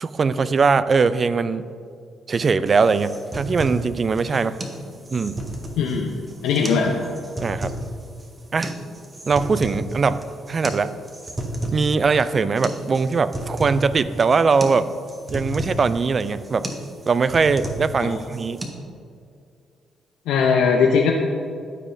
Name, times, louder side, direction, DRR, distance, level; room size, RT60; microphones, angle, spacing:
voice 1, 0.0-1.7 2.3-4.5 5.1-5.5 7.4-7.7 8.5-8.7 9.3-10.2 10.5-10.9 11.7-14.9 15.3-16.7 17.1-18.6, right 4 dB, 45° right, 14 dB, 0.3 m, -21 dB
sound 1, 2.7-18.7, right 1 dB, 30° right, 1.2 m, -32 dB
voice 2, 5.8-6.1 6.4-7.0 18.0-18.2 20.3-21.1, left 5 dB, 70° left, 0 dB, 0.5 m, -19 dB
13.0 x 5.3 x 2.6 m, 2.3 s
hypercardioid pair, 45°, 0 cm